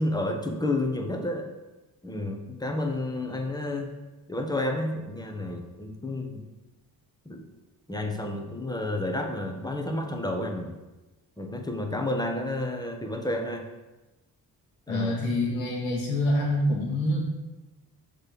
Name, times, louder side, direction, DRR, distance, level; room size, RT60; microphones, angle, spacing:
voice 1, 0.0-1.5 2.0-3.9 4.3-6.4 7.2-7.4 7.9-10.7 11.4-13.7 14.9-15.2, left 1 dB, 10° left, 3 dB, 1.2 m, -30 dB
voice 2, 14.9-17.3, left 1 dB, 80° left, -3 dB, 1.8 m, -26 dB
6.5 x 3.4 x 6.0 m, 1.1 s
supercardioid pair, 50°, 45 cm